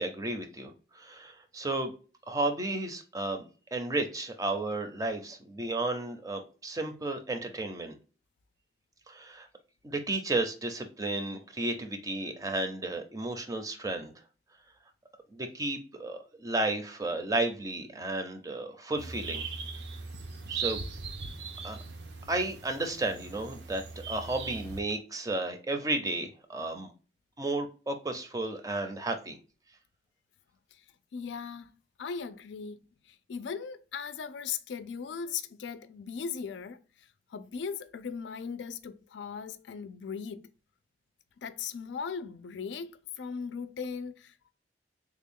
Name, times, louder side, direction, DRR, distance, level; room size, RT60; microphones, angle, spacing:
voice 1, 0.0-1.9 2.3-3.5 3.7-7.9 9.1-9.5 9.8-14.1 15.3-19.5 20.5-20.8 21.6-21.8 22.3-26.9 27.4-29.4, right 2 dB, 20° right, 0.5 m, -33 dB
sound 1, 19.0-24.8, right 5 dB, 80° right, 0.5 m, -39 dB
voice 2, 31.1-31.7 32.0-32.8 33.3-36.8 37.3-40.5 41.4-42.9 43.2-44.5, left 6 dB, 90° left, 0.4 m, -38 dB
3.4 x 2.2 x 3.5 m
head